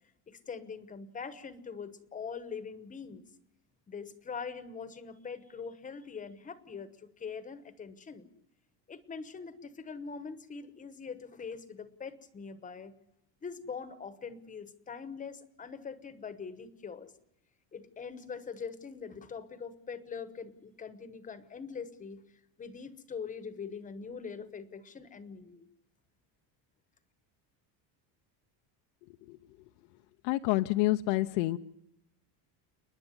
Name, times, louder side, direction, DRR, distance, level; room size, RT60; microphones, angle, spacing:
voice 1, 0.3-3.2 3.9-8.3 8.9-13.0 13.4-17.1 17.7-22.2 22.6-25.6, left 5 dB, 20° left, 13 dB, 1.0 m, -43 dB
voice 2, 30.2-31.6, left 18 dB, 85° left, 7 dB, 0.8 m, -28 dB
29.5 x 10.5 x 9.7 m, 0.85 s
cardioid pair, 170°, 43 cm